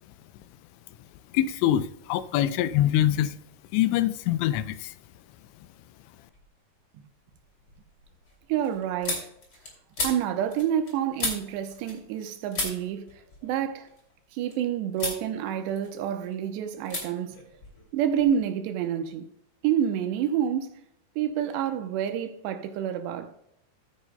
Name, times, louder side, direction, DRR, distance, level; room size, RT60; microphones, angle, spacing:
voice 1, 1.3-3.4 3.7-4.9, left 12 dB, 85° left, 2.9 m, -24 dB
sound 1, 6.3-6.8 7.2-12.2 12.5-14.5 14.9-15.2 15.6-16.3 16.8-17.0 17.3-18.4, left 2 dB, 30° left, 2.5 m, -36 dB
voice 2, 8.5-9.3 10.0-13.1 13.4-13.9 14.3-17.4 17.9-19.3 19.6-20.8 21.2-23.3, right 9 dB, 80° right, 2.7 m, -28 dB
14.5 x 9.5 x 2.2 m
omnidirectional pair, 5.2 m